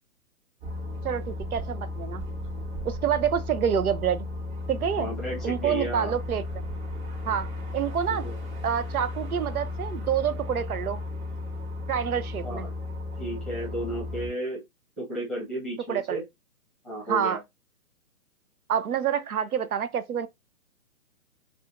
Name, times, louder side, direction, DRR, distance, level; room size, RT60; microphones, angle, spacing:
sound 1, 0.6-14.3, left 2 dB, 35° right, 2.1 m, -35 dB
voice 1, 1.0-2.2 2.8-4.3 4.7-5.1 5.4-6.4 7.3-8.3 8.6-11.0 11.9-12.7 15.9-16.2 17.1-17.4 18.7-20.3, right 8 dB, 85° right, 0.6 m, -27 dB
voice 2, 5.0-6.1 8.1-8.3 12.4-12.7 13.2-14.6 15.0-16.2 16.8-17.4, right 1 dB, ahead, 1.0 m, -33 dB
4.8 x 2.4 x 2.5 m
hypercardioid pair, 150°, 43 cm